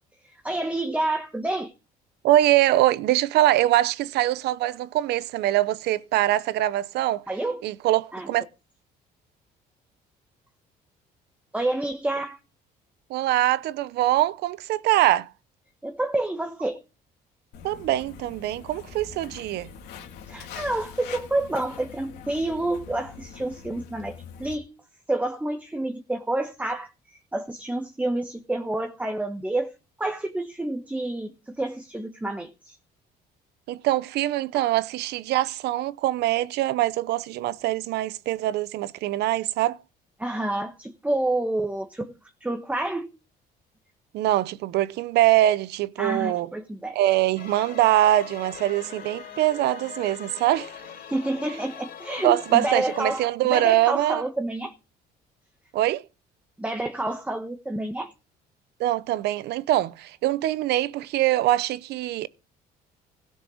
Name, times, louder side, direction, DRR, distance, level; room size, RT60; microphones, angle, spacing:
voice 1, 0.4-1.7 7.3-7.6 8.1-8.3 11.5-12.4 15.8-16.8 20.3-24.7 25.1-26.9 27.3-29.7 30.0-32.8 40.2-42.1 42.4-43.1 46.0-47.0 51.0-54.7 56.6-58.1, right 2 dB, 10° right, 1.3 m, -28 dB
voice 2, 2.2-7.2 7.6-8.4 13.1-15.3 17.6-19.7 33.7-39.8 44.1-46.5 46.9-50.7 52.2-54.3 55.7-56.1 58.8-62.3, right 14 dB, 80° right, 0.8 m, -23 dB
Walk footsteps, 17.5-24.6, left 7 dB, 85° left, 3.0 m, -43 dB
sound 1, 47.4-53.2, left 8 dB, 65° left, 4.1 m, -41 dB
16.5 x 6.6 x 5.0 m
cardioid pair, 110°, 17 cm